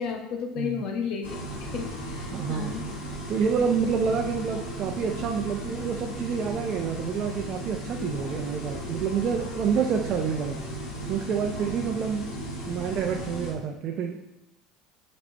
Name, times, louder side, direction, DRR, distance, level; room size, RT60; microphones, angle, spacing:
voice 1, 0.0-2.8, left 6 dB, 60° left, 3 dB, 1.1 m, -33 dB
sound 1, 1.2-13.5, right 1 dB, 85° left, 1.3 m, -36 dB
voice 2, 2.3-2.7 3.3-10.6 11.1-12.3 12.7-14.2, right 6 dB, 50° right, 2 dB, 0.6 m, -28 dB
8.3 x 4.3 x 3.3 m, 0.95 s
hypercardioid pair, 75°, 0 cm